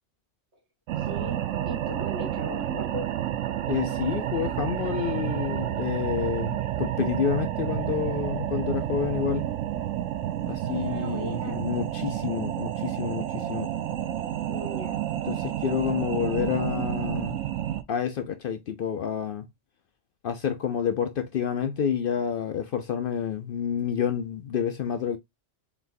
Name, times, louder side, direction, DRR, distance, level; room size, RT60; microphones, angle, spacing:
sound 1, 0.9-17.8, right 12 dB, 90° right, 0.9 m, -30 dB
voice 1, 1.0-3.1 10.7-11.7 14.5-15.0, equal, 65° right, 1.9 m, -38 dB
voice 2, 3.7-9.5 10.5-13.7 15.3-17.4 17.9-19.5 20.2-25.2, left 8 dB, 60° left, 0.6 m, -29 dB
4.1 x 3.9 x 2.6 m
omnidirectional pair, 1.2 m